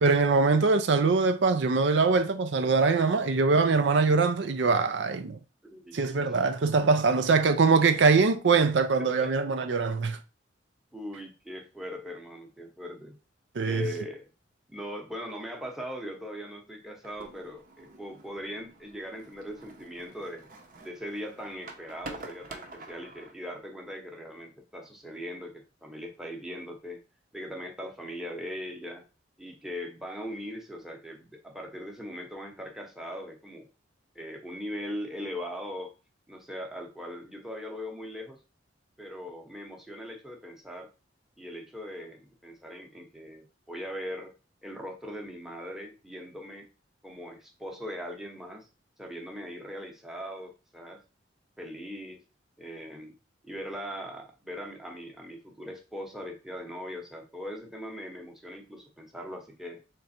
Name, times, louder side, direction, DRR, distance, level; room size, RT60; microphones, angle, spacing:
voice 1, 0.0-5.4 5.9-10.2 13.6-13.9, right 4 dB, 70° right, 0.5 m, -23 dB
voice 2, 5.7-6.4 9.0-9.3 10.9-13.2 13.6-14.3 14.7-20.5 20.8-27.0 27.3-29.0 29.4-33.7 34.1-35.9 36.3-38.4 39.0-40.9 41.4-44.3 44.6-46.7 47.0-48.7 49.0-51.0 51.6-52.2 52.6-53.2 53.4-59.8, equal, ahead, 0.9 m, -40 dB
sound 1, 17.0-23.3, right 3 dB, 50° right, 0.8 m, -47 dB
3.7 x 3.3 x 4.3 m
head